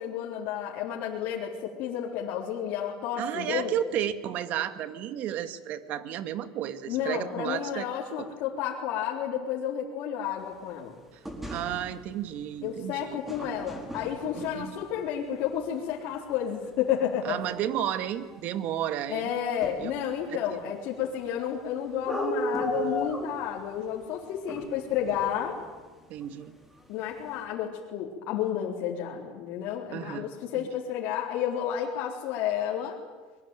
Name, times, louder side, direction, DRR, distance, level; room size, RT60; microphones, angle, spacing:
voice 1, 0.0-3.7 6.9-11.0 12.6-17.4 19.1-25.6 26.9-33.0, left 9 dB, 65° left, -3 dB, 4.0 m, -31 dB
voice 2, 3.2-7.8 8.2-8.3 11.5-13.2 14.4-14.8 17.2-19.3 19.8-19.9 20.3-20.6 26.1-26.5 29.9-30.3 30.5-30.7, right 10 dB, 55° right, 11 dB, 2.1 m, -32 dB
sound 1, 11.3-12.1 13.3-15.0 16.9-17.0 17.7-17.8 18.0-18.1 18.3-18.4 19.6-20.0 22.1-23.7 24.5-25.7 26.2-26.3 26.7-26.8 27.1-27.4, equal, 5° right, 4.5 m, -35 dB
24.0 x 22.0 x 9.2 m, 1.3 s
supercardioid pair, 115°, 3 cm